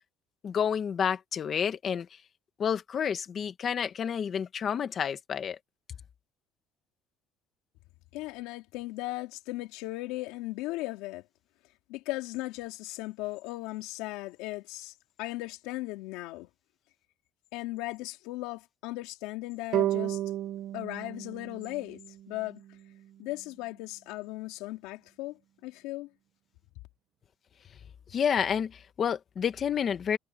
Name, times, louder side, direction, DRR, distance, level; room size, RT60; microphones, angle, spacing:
voice 1, 0.4-2.2 2.6-5.6 28.1-30.2, left 7 dB, 30° left, 1.5 m, -29 dB
voice 2, 8.1-11.2 11.9-16.5 17.5-20.2 20.7-22.0 22.3-22.6 23.2-26.1, left 19 dB, 85° left, 3.6 m, -37 dB
sound 1, 19.7-23.0, right 13 dB, 45° right, 0.6 m, -33 dB
cardioid pair, 175°, 0 cm